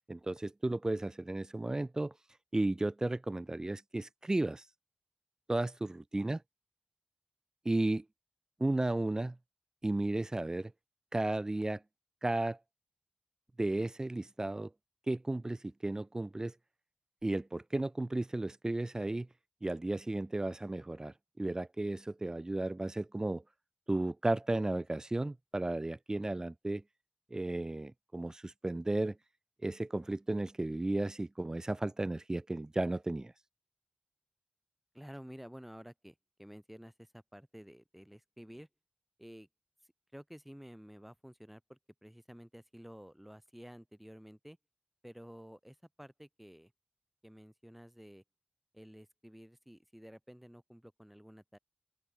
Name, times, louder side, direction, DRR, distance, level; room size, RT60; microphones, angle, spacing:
voice 1, 0.1-2.1 2.5-4.6 5.5-6.4 7.7-8.0 8.6-9.4 9.8-10.7 11.1-11.8 12.2-12.6 13.6-14.7 15.1-16.5 17.2-19.3 19.6-23.4 23.9-26.8 27.3-29.2 29.6-33.3, right 2 dB, 20° right, 0.4 m, -34 dB
voice 2, 34.9-38.7 39.2-39.5 40.1-44.6 45.0-46.7 47.2-48.2 48.7-51.6, equal, 5° right, 2.7 m, -52 dB
open air
wide cardioid pair, 105°, 3 cm